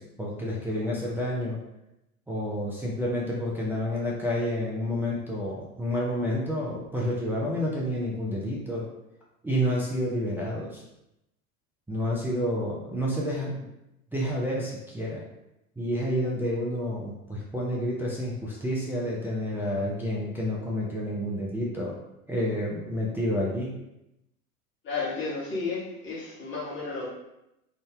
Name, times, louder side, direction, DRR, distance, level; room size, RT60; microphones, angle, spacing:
voice 1, 0.0-1.6 2.3-8.9 9.4-10.8 11.9-13.6 14.1-15.3 15.8-22.0 22.3-23.7, equal, 5° right, -5 dB, 0.4 m, -29 dB
voice 2, 24.8-27.1, left 4 dB, 25° left, -6 dB, 1.3 m, -32 dB
3.5 x 2.6 x 3.4 m, 0.89 s
figure-of-eight pair, 80°, 45 cm